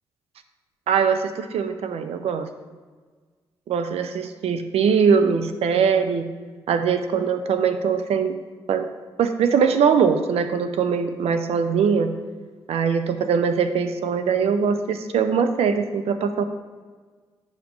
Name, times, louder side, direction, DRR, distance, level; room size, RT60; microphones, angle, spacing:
voice 1, 0.9-2.5 3.7-6.3 6.7-8.4 8.7-8.9 9.2-12.1 12.7-16.4, right 6 dB, 80° right, 9 dB, 0.6 m, -21 dB
9.5 x 5.2 x 3.1 m, 1.5 s
supercardioid pair, 50°, 10 cm